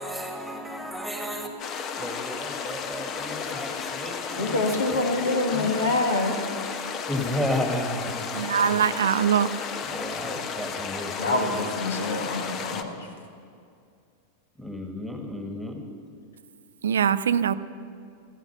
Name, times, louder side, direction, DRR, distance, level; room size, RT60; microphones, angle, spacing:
voice 1, 0.0-1.5 2.0-5.9 7.1-8.3 9.9-11.6 14.6-15.9, left 1 dB, ahead, 2.0 m, -33 dB
sound 1, 1.6-12.8, left 6 dB, 30° left, 0.9 m, -33 dB
voice 2, 4.4-6.4 11.2-13.1, left 2 dB, 65° left, 1.9 m, -26 dB
voice 3, 8.3-9.5 16.8-17.5, right 8 dB, 65° right, 0.4 m, -22 dB
14.5 x 12.5 x 6.0 m
figure-of-eight pair, 90°, 0 cm